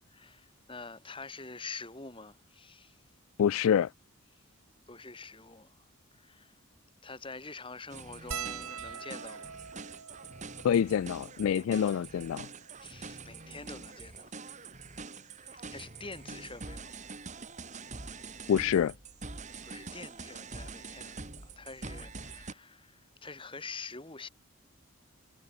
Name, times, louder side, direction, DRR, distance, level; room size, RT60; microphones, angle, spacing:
voice 1, 0.1-3.0 4.9-5.8 6.1-6.5 7.0-9.6 12.8-14.3 15.6-17.0 19.6-24.3, left 4 dB, 25° left, 2.6 m, -46 dB
voice 2, 3.4-3.9 10.6-12.5 18.5-18.9, left 8 dB, 70° left, 0.3 m, -26 dB
sound 1, 7.9-22.5, right 4 dB, 35° right, 2.3 m, -45 dB
sound 2, 8.3-12.9 13.7-13.8 13.9-14.1 15.4-15.6 17.1-17.2 17.4-17.6, right 7 dB, 85° right, 1.9 m, -44 dB
head